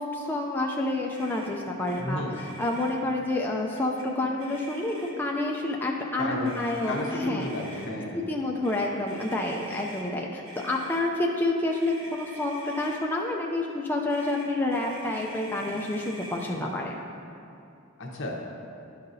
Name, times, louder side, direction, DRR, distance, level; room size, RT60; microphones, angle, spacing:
voice 1, 0.0-2.2 2.6-7.5 8.1-17.0, left 2 dB, 10° left, -1 dB, 0.4 m, -29 dB
Motor vehicle (road), 1.1-1.5 1.8-2.0 2.3-3.0 3.7-4.1 4.4-5.3 6.4-7.9 8.6-10.1 10.5-11.0 11.7-13.0 14.1-16.6, right 1 dB, 75° right, 1.1 m, -45 dB
voice 2, 2.0-2.5 6.2-8.2 18.0-18.5, left 1 dB, 65° left, -1 dB, 1.0 m, -33 dB
11.0 x 5.6 x 2.7 m, 2.7 s
head